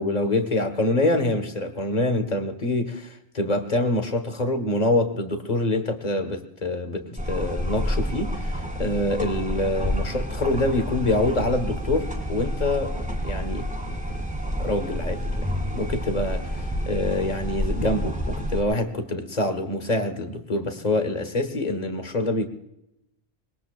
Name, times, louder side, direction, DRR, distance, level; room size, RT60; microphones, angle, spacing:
voice 1, 0.0-13.9 14.6-22.5, left 2 dB, 40° left, 7 dB, 1.6 m, -26 dB
sound 1, 7.2-18.6, equal, 5° right, 2.5 m, -29 dB
25.0 x 21.0 x 2.5 m, 0.85 s
omnidirectional pair, 1.1 m